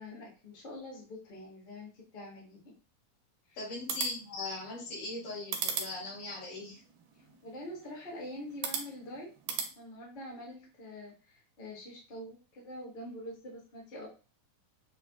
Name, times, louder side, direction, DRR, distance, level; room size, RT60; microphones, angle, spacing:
voice 1, 0.0-2.7 3.5-3.6 7.4-14.1, left 1 dB, 35° left, -4 dB, 0.8 m, -45 dB
voice 2, 3.6-6.8, left 2 dB, 75° left, -5 dB, 3.2 m, -39 dB
sound 1, 3.7-9.7, right 6 dB, 90° right, 2.4 m, -40 dB
6.7 x 2.3 x 2.3 m, 0.35 s
omnidirectional pair, 3.7 m